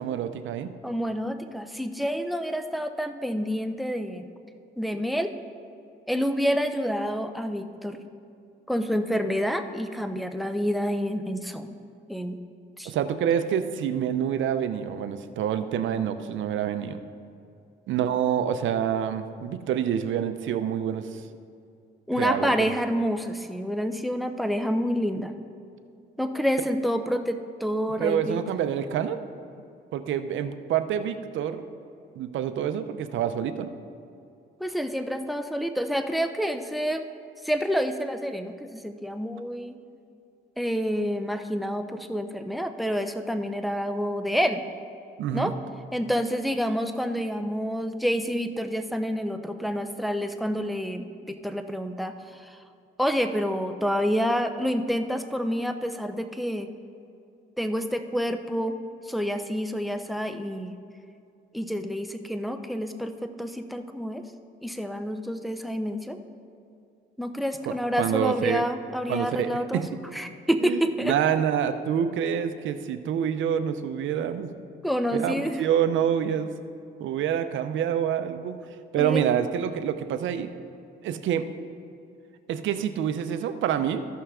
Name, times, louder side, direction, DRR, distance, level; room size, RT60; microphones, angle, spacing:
voice 1, 0.0-0.7 12.8-17.0 17.9-21.2 22.2-22.7 28.0-29.2 29.9-31.7 32.2-33.7 45.2-45.5 67.7-68.6 69.1-69.8 70.6-74.5 75.1-76.5 77.0-78.6 78.9-80.5 81.0-81.5 82.5-84.1, right 9 dB, 75° right, 10 dB, 0.6 m, -27 dB
voice 2, 0.8-4.3 4.8-5.3 6.1-8.0 8.7-11.7 12.1-12.4 12.8-12.9 22.1-25.3 26.2-28.4 34.6-37.0 37.4-39.8 40.6-44.6 45.3-45.5 45.9-52.6 53.0-56.7 57.6-58.8 59.1-60.8 61.5-64.2 64.6-66.2 67.2-69.8 70.1-71.1 74.8-75.6 79.0-79.2, equal, ahead, 8 dB, 0.6 m, -28 dB
14.0 x 5.6 x 3.7 m, 2.5 s
cardioid pair, 90°, 20 cm